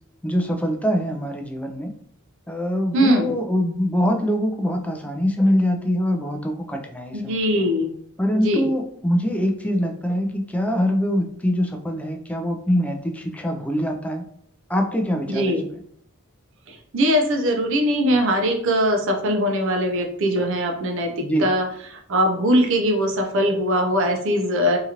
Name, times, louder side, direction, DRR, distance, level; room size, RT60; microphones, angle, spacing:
voice 1, 0.2-1.9 2.5-7.7 8.2-14.3 14.7-15.6 21.2-21.5, equal, 5° left, 3 dB, 0.3 m, -23 dB
voice 2, 2.9-3.4 7.1-7.9 8.3-8.7 15.3-15.7 16.7-24.8, equal, 65° right, 3 dB, 0.6 m, -21 dB
2.8 x 2.4 x 2.8 m, 0.65 s
head